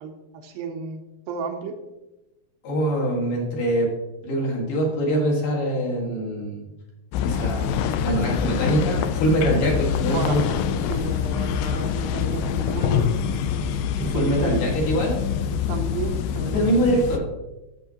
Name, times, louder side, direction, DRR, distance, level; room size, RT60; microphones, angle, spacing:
voice 1, 0.0-1.8 10.1-10.4 10.9-13.1 14.1-14.6 15.7-16.7, right 5 dB, 75° right, 5 dB, 2.4 m, -32 dB
voice 2, 2.6-3.9 4.2-6.6 7.2-10.4 13.9-15.2 16.5-17.2, right 1 dB, 65° left, -2 dB, 3.3 m, -23 dB
sound 1, 7.1-17.2, left 8 dB, 85° left, 2.0 m, -25 dB
12.5 x 7.1 x 2.9 m, 1.0 s
omnidirectional pair, 4.4 m